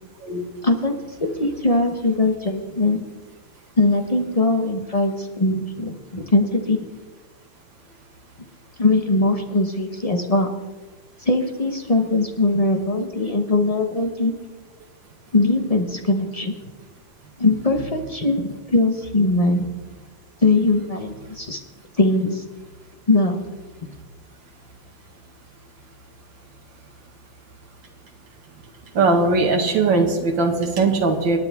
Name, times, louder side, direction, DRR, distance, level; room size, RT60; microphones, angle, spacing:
voice 1, 0.6-3.0 3.8-6.8 8.8-10.5 11.3-14.3 15.3-16.5 17.4-19.7 20.4-21.6 22.0-22.4 23.1-23.4, left 2 dB, 30° left, 4 dB, 0.6 m, -21 dB
voice 2, 28.9-31.4, right 3 dB, 70° right, 3 dB, 2.4 m, -19 dB
27.0 x 9.6 x 3.6 m, 1.3 s
omnidirectional pair, 2.2 m